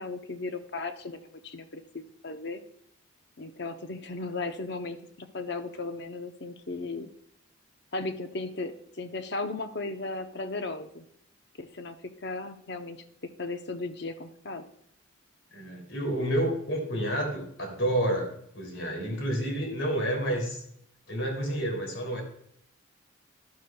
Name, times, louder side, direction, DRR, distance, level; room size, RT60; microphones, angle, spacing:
voice 1, 0.0-2.6 3.4-7.1 7.9-11.0 11.6-13.0 13.2-14.7, left 3 dB, 55° left, 8 dB, 0.7 m, -36 dB
voice 2, 15.5-20.6 21.1-22.2, right 1 dB, 70° left, 2 dB, 3.0 m, -29 dB
11.5 x 11.5 x 2.3 m, 0.71 s
head